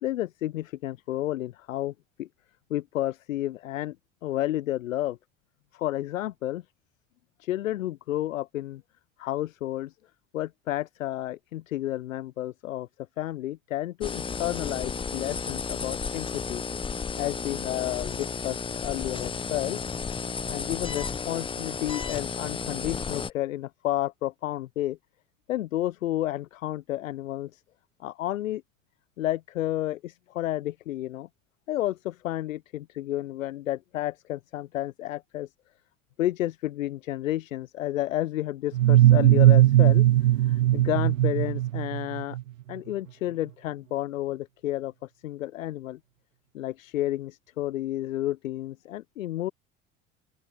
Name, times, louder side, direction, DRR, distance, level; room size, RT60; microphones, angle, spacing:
voice 1, 0.0-1.9 2.2-2.3 2.7-4.0 4.2-5.2 5.7-6.6 7.4-8.8 9.2-9.9 10.3-12.9 13.2-16.6 17.1-19.8 20.5-25.0 25.5-27.6 28.0-28.6 29.2-31.3 31.7-35.5 36.2-40.1 40.4-42.4 42.7-46.0 46.5-49.5, left 14 dB, 80° left, 0.7 m, -31 dB
sound 1, 14.0-23.3, left 5 dB, 15° left, 0.5 m, -33 dB
sound 2, 38.7-42.4, right 14 dB, 80° right, 0.7 m, -19 dB
open air
hypercardioid pair, 70°, 39 cm